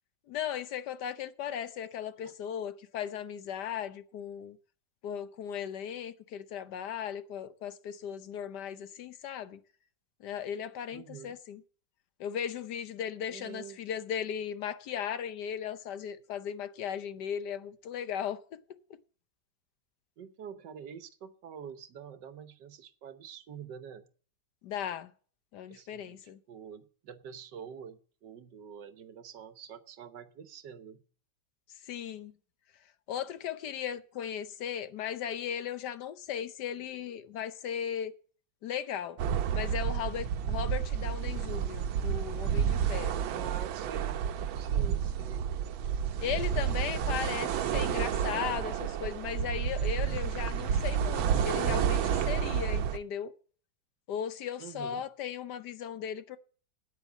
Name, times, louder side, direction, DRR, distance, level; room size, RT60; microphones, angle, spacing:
voice 1, 0.3-4.6 5.0-9.6 10.2-11.6 12.2-18.6 24.6-25.1 25.5-26.4 31.9-32.3 33.1-38.1 38.6-39.2 39.5-43.2 46.2-53.3 54.1-56.4, left 9 dB, 65° left, 1.2 m, -37 dB
voice 2, 10.9-11.4 13.3-13.8 20.2-24.1 25.7-31.0 43.3-44.2 44.5-45.5 54.6-55.0, right 7 dB, 65° right, 1.6 m, -46 dB
sound 1, 39.2-53.0, right 8 dB, 85° right, 1.6 m, -30 dB
9.2 x 9.1 x 7.2 m
omnidirectional pair, 2.1 m